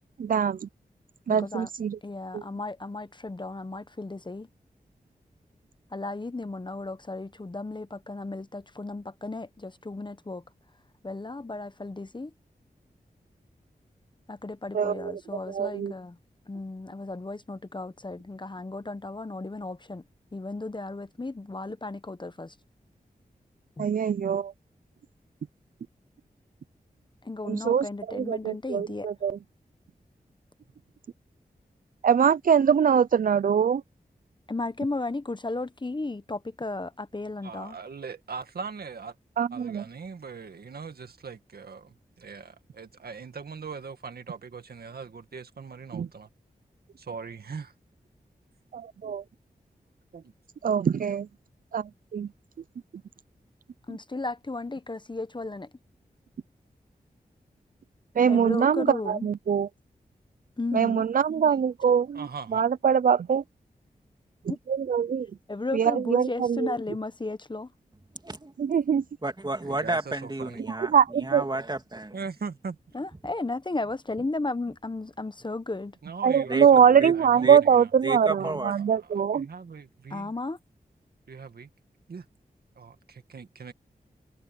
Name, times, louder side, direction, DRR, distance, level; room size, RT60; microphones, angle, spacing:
voice 1, 0.2-0.7 1.3-2.0 2.3-2.4 14.7-15.2 15.5-15.9 23.8-24.5 27.4-29.4 32.0-33.8 39.4-39.8 45.9-46.1 48.7-49.2 50.6-51.3 51.7-52.3 58.2-59.7 60.7-63.4 64.4-65.3 65.7-66.7 68.6-69.0 70.9-71.4 76.2-79.5, right 7 dB, 60° right, 0.5 m, -23 dB
voice 2, 1.3-1.7 2.0-4.5 5.9-10.4 11.0-12.3 14.3-16.2 16.5-20.0 20.3-22.5 23.8-23.9 27.2-29.1 34.5-37.8 53.9-55.7 58.3-59.3 60.6-61.0 64.5-64.6 65.5-67.7 72.9-76.0 80.1-80.6, left 2 dB, 30° left, 1.0 m, -34 dB
voice 3, 37.4-39.1 39.5-46.3 47.0-47.7 50.1-50.3 62.1-62.6 69.6-70.6 72.1-72.8 76.0-77.9 78.4-80.3 81.3-81.7 82.1-82.3 82.8-83.7, right 5 dB, 75° right, 2.1 m, -40 dB
voice 4, 68.2-68.5 69.2-72.2 76.5-76.7 76.9-77.1 77.4-77.6 78.0-78.7, right 2 dB, 25° right, 2.8 m, -31 dB
cardioid pair, 45°, 16 cm